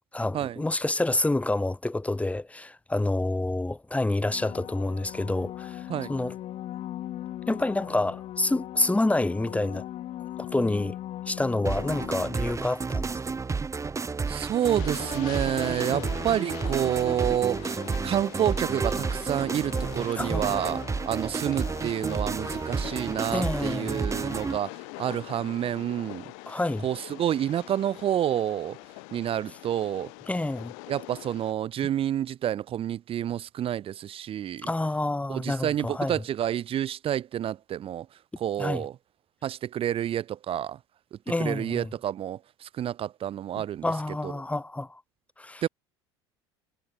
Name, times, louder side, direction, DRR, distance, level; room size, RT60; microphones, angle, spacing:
voice 1, 0.1-6.3 7.5-9.8 10.4-11.0 11.3-13.1 15.9-16.1 20.2-20.6 23.3-24.0 26.5-26.9 30.3-30.7 34.6-36.1 38.6-38.8 41.3-41.9 43.8-45.0 45.4-45.6, left 2 dB, 10° left, 3.7 m, -28 dB
sound 1, 4.2-12.8 18.1-18.2, left 13 dB, 50° left, 6.7 m, -39 dB
sound 2, 11.6-24.6, right 4 dB, 20° right, 2.9 m, -31 dB
voice 2, 14.3-26.3 26.8-28.8 29.1-30.1 30.9-34.7 35.3-38.1 38.4-38.9 39.4-40.8 41.1-43.8 44.2-44.3 45.6-45.7, right 11 dB, 45° right, 1.2 m, -29 dB
Train, 14.6-31.5, left 40 dB or more, 70° left, 4.1 m, -43 dB
hypercardioid pair, 75°, 13 cm